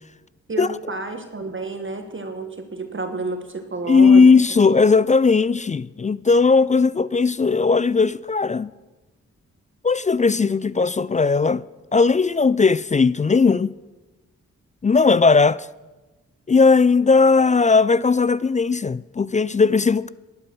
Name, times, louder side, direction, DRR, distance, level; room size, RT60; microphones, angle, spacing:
voice 1, 0.5-4.3, right 3 dB, 40° right, 1.5 m, -30 dB
voice 2, 3.9-8.7 9.8-11.6 11.9-13.7 14.8-15.7 16.5-20.1, left 4 dB, 25° left, 0.4 m, -17 dB
11.5 x 11.5 x 6.1 m
supercardioid pair, 40°, 31 cm